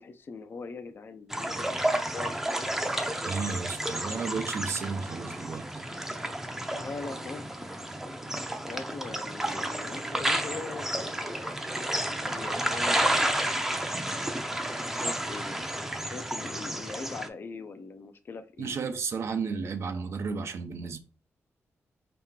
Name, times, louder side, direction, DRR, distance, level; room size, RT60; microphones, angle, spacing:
voice 1, 0.0-2.7 6.7-7.5 8.6-11.5 12.2-13.9 14.9-18.8, left 4 dB, 45° left, 0.5 m, -42 dB
sound 1, 1.3-17.3, right 1 dB, 5° right, 0.6 m, -31 dB
voice 2, 3.2-5.9 18.6-21.0, right 5 dB, 60° right, 0.6 m, -33 dB
4.4 x 2.9 x 3.6 m
cardioid pair, 95°, 5 cm